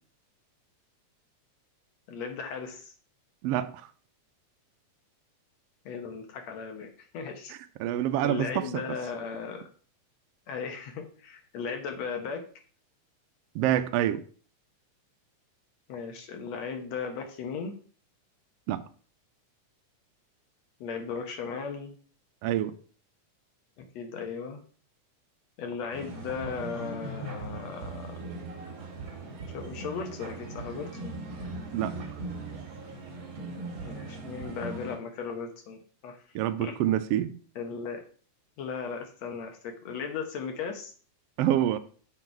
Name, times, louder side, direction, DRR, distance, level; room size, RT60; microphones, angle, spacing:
voice 1, 2.1-2.9 5.9-6.9 7.1-7.5 8.2-9.7 10.5-12.4 15.9-17.7 20.8-21.9 23.8-24.6 25.6-28.2 29.5-31.1 33.8-36.2 36.6-36.7 37.6-38.0 38.6-40.9, left 5 dB, 65° left, 2.2 m, -36 dB
voice 2, 3.4-3.9 7.5-8.7 13.5-14.2 18.7-18.8 22.4-22.7 31.7-32.0 36.3-37.3 41.4-41.8, right 12 dB, 90° right, 1.4 m, -27 dB
sound 1, 25.9-35.0, right 2 dB, 50° right, 2.2 m, -39 dB
7.9 x 4.0 x 4.5 m
omnidirectional pair, 3.5 m